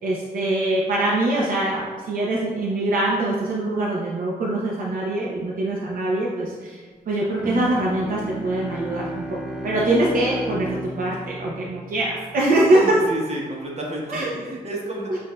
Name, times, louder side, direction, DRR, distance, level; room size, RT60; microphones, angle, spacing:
voice 1, 0.0-6.8 7.1-9.4 9.6-12.8 14.1-14.3, right 2 dB, 70° right, -4 dB, 0.6 m, -23 dB
Bowed string instrument, 7.4-12.5, equal, 5° right, 0.5 m, -33 dB
voice 2, 12.7-15.2, right 1 dB, 45° right, -3 dB, 1.0 m, -31 dB
7.1 x 2.6 x 2.2 m, 1.5 s
wide cardioid pair, 105°, 15 cm